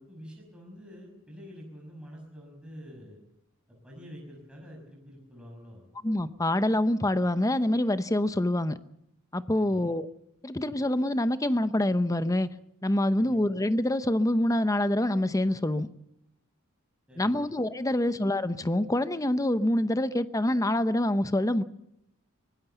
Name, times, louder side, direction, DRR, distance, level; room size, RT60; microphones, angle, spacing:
voice 1, 0.0-3.2 3.8-5.8 9.5-10.0 13.2-13.4 17.1-17.5 17.9-18.1, equal, 5° right, -1 dB, 5.7 m, -47 dB
voice 2, 6.0-8.8 9.3-10.1 10.4-12.5 12.8-15.9 17.2-21.6, left 1 dB, 15° left, 13 dB, 0.8 m, -26 dB
23.5 x 19.5 x 6.9 m, 0.79 s
head